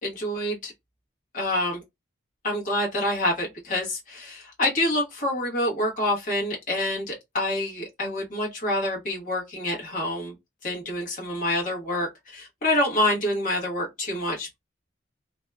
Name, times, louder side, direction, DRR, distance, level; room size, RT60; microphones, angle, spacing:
voice 1, 0.0-0.7 1.3-1.8 2.4-10.3 10.6-14.6, left 1 dB, 40° left, 1.0 m, -27 dB
2.7 x 2.2 x 2.3 m
head